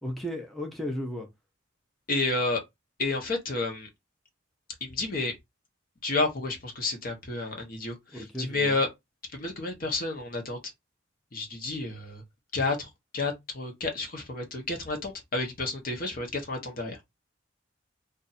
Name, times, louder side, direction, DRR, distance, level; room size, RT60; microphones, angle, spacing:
voice 1, 0.0-1.3 8.1-8.8, left 1 dB, ahead, 0.6 m, -35 dB
voice 2, 2.1-2.6 3.0-3.9 4.8-5.3 6.0-8.9 9.3-10.6 11.3-12.2 12.5-12.9 13.1-17.0, left 3 dB, 45° left, 0.9 m, -30 dB
2.5 x 2.5 x 4.1 m
head